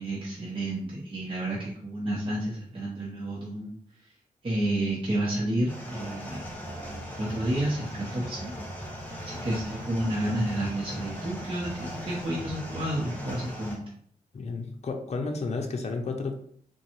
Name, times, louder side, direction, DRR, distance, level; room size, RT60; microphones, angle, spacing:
voice 1, 0.0-3.7 4.4-6.4 6.8-8.5 9.2-13.8, right 1 dB, 35° right, -5 dB, 0.9 m, -30 dB
sound 1, 5.7-13.8, equal, 10° left, 1.1 m, -38 dB
voice 2, 14.3-16.3, left 3 dB, 45° left, 3 dB, 0.6 m, -32 dB
3.7 x 2.3 x 3.0 m, 0.63 s
cardioid pair, 60°, 15 cm